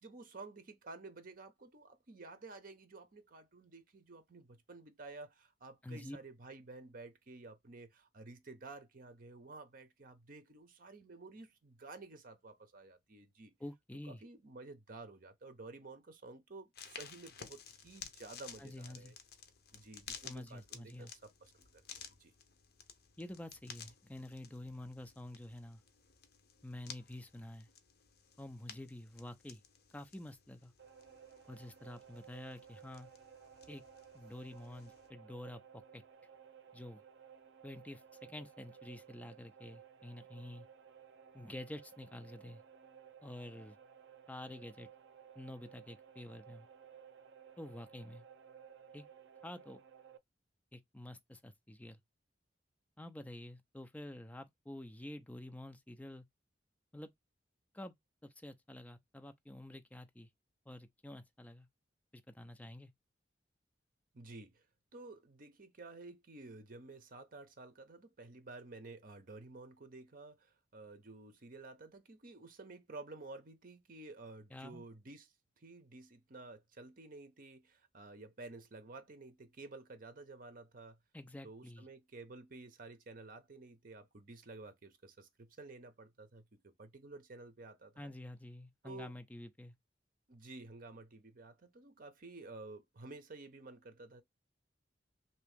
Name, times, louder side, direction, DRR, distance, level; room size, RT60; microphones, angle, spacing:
voice 1, 0.0-13.5 14.1-19.1 19.7-22.3 64.1-64.6 64.9-75.3 75.6-81.0 81.4-88.1 88.8-89.2 90.3-94.2, right 3 dB, 50° right, 0.8 m, -52 dB
voice 2, 5.8-6.2 13.6-14.2 18.6-19.1 20.2-21.1 23.2-25.8 26.6-27.7 28.4-29.6 29.9-30.7 31.5-33.1 33.7-33.8 34.1-36.0 36.7-37.0 37.6-38.0 38.3-40.7 41.3-42.6 43.2-43.8 44.3-44.9 45.4-46.7 47.6-48.3 48.9-49.0 49.4-49.8 50.7-52.0 53.0-56.2 56.9-57.1 57.7-57.9 58.2-60.3 60.7-61.7 62.1-62.9 74.5-74.9 81.1-81.9 88.0-89.8, left 1 dB, 10° left, 0.5 m, -48 dB
sound 1, 16.7-35.1, left 7 dB, 60° left, 0.7 m, -55 dB
sound 2, 30.8-50.2, right 7 dB, 85° right, 0.5 m, -58 dB
2.9 x 2.8 x 3.5 m
head